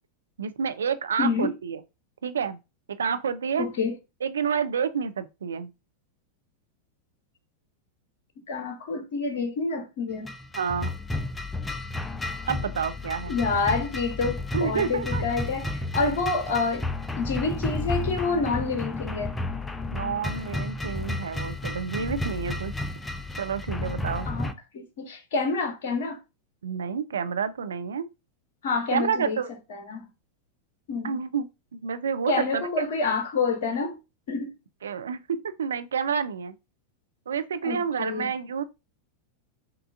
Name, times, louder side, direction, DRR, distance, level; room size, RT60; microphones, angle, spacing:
voice 1, 0.4-1.8 2.2-2.6 3.0-3.7 4.2-5.7 10.5-10.9 12.5-13.4 14.5-15.2 19.9-22.7 23.4-24.3 26.6-28.1 28.9-29.5 31.0-32.7 34.8-36.5 37.3-38.6, right 7 dB, 65° right, 0.4 m, -29 dB
voice 2, 1.2-1.5 3.6-3.9 8.5-10.3 13.3-16.8 17.2-19.3 24.3-26.2 28.6-29.4 29.7-30.1 30.9-31.2 32.3-34.0 34.3-34.5 37.6-38.3, left 4 dB, 55° left, 0.7 m, -28 dB
sound 1, 10.2-24.5, left 2 dB, 10° left, 0.4 m, -32 dB
5.8 x 2.4 x 2.5 m
figure-of-eight pair, 90°, 0 cm